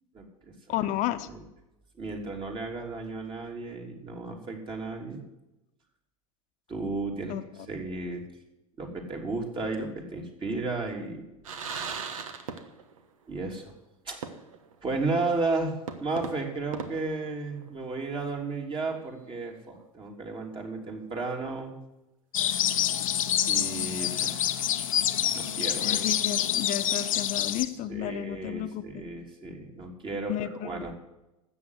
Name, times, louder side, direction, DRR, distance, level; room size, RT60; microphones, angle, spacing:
voice 1, 0.7-1.3 7.3-7.4 25.8-29.0 30.3-30.9, left 13 dB, 45° left, 10 dB, 1.1 m, -32 dB
voice 2, 2.0-5.2 6.7-7.3 7.7-8.2 8.8-11.2 13.3-13.7 14.0-14.2 14.8-15.7 16.0-21.7 23.5-24.4 25.3-26.0 27.9-30.9, right 3 dB, 30° right, 2 dB, 3.2 m, -33 dB
sound 1, 11.4-13.0 13.3-13.4 14.2-14.7 15.1-15.2 15.9-17.9, right 6 dB, 65° right, 1.4 m, -38 dB
sound 2, 22.3-27.7, left 10 dB, 70° left, 0.9 m, -27 dB
13.0 x 8.2 x 8.1 m, 0.93 s
figure-of-eight pair, 80°, 18 cm